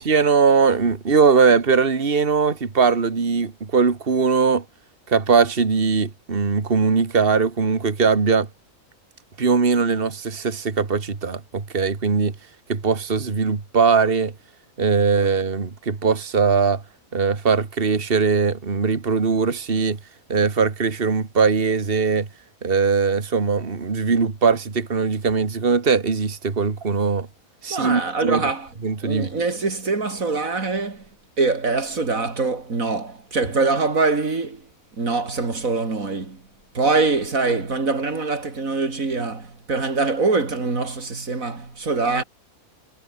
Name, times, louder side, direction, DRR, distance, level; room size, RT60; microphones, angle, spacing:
voice 1, 0.1-4.7 5.1-8.5 9.4-12.3 12.7-14.3 14.8-16.8 17.1-20.0 20.3-22.3 22.6-27.3 27.6-28.5 28.8-29.3, right 5 dB, 40° right, 2.1 m, -20 dB
voice 2, 27.7-28.7 29.0-31.1 31.4-34.7 35.0-36.4 36.7-42.2, right 3 dB, 65° right, 3.7 m, -23 dB
omnidirectional pair, 1.6 m